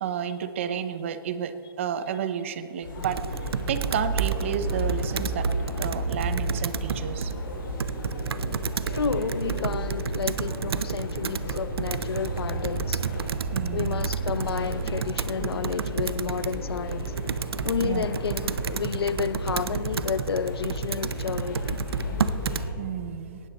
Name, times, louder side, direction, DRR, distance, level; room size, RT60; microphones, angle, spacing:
voice 1, 0.0-3.2 3.7-5.5 5.8-7.3 13.5-14.0 17.8-18.0 22.8-23.4, right 8 dB, 30° right, 0.6 m, -31 dB
sound 1, 2.8-22.7, right 1 dB, 60° left, 4.4 m, -33 dB
Computer keyboard, 3.0-22.7, right 6 dB, 85° right, 0.6 m, -32 dB
voice 2, 8.9-13.0 13.7-17.1 17.6-21.8, left 6 dB, 90° left, 0.8 m, -31 dB
18.5 x 13.5 x 4.1 m
hypercardioid pair, 170°, 13 cm